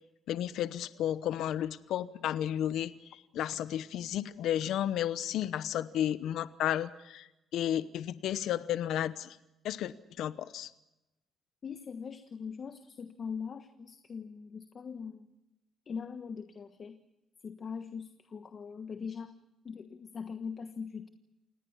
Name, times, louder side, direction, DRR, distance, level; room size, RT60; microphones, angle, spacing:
voice 1, 0.3-9.4 9.6-9.9 10.2-10.7, left 11 dB, 80° left, 14 dB, 0.9 m, -33 dB
voice 2, 11.6-15.2 15.8-17.0 17.4-19.4 19.6-21.1, left 6 dB, 45° left, 9 dB, 1.3 m, -41 dB
28.5 x 18.5 x 7.3 m, 0.92 s
cardioid pair, 90°, 0 cm